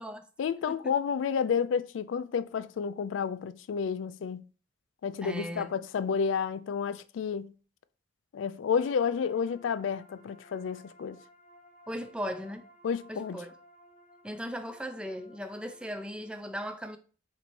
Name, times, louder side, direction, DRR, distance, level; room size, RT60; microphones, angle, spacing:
voice 1, 0.4-4.4 5.0-7.5 8.3-11.2 12.8-13.4, left 6 dB, 90° left, 0.3 m, -30 dB
voice 2, 5.2-5.7 11.9-12.7 13.1-13.5 14.2-17.0, equal, 5° right, 0.3 m, -37 dB
sound 1, 8.7-16.4, equal, 30° left, 0.8 m, -57 dB
4.0 x 2.6 x 4.5 m
head